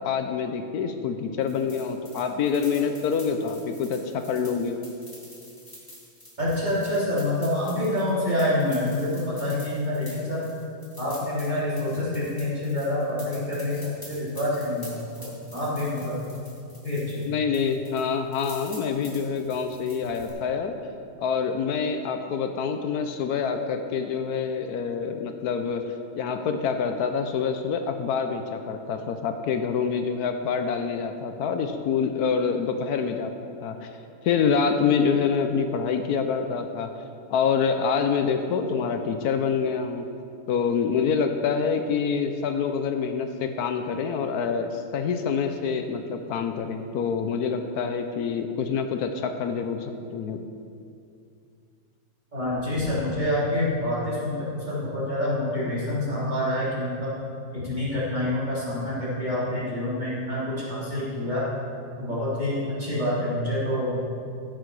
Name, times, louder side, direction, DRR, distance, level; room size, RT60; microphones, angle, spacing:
voice 1, 0.0-4.8 17.3-20.8 21.2-25.8 26.1-33.3 33.6-34.0 34.2-36.9 37.3-40.0 40.5-50.4, left 6 dB, 80° left, 6 dB, 1.2 m, -26 dB
sound 1, 1.4-17.3 17.5-20.3, left 1 dB, 15° left, 2.2 m, -47 dB
voice 2, 6.4-10.5 11.0-15.3 15.5-16.2 16.8-17.3 52.3-57.1 57.5-61.5 62.0-64.1, left 1 dB, 30° right, -9 dB, 3.4 m, -27 dB
15.0 x 6.7 x 4.7 m, 2.4 s
omnidirectional pair, 1.6 m